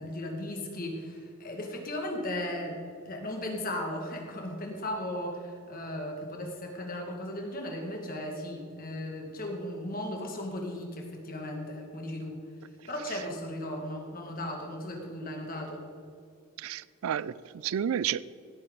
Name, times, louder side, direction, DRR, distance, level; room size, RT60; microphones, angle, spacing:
voice 1, 0.0-2.8 3.1-12.4 12.9-15.8, left 1 dB, 40° left, 2 dB, 2.0 m, -36 dB
voice 2, 16.6-18.2, right 9 dB, 70° right, 19 dB, 0.3 m, -31 dB
16.5 x 8.8 x 4.0 m, 2.5 s
head